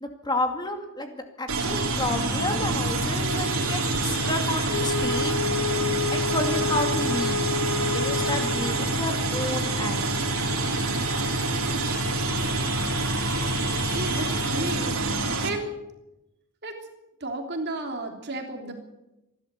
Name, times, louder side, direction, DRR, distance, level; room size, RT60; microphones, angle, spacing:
voice 1, 0.0-5.4 6.1-7.4 7.9-10.0, left 1 dB, 20° left, 5 dB, 2.3 m, -31 dB
sound 1, 1.5-15.5, right 2 dB, 70° right, 3.3 m, -26 dB
Wind instrument woodwind instrument, 4.7-8.9, left 5 dB, 70° left, 1.4 m, -29 dB
voice 2, 13.9-14.9 15.4-15.7 16.6-16.8 17.2-18.7, right 2 dB, 50° right, 3 dB, 3.2 m, -32 dB
27.0 x 12.0 x 8.3 m, 0.96 s
head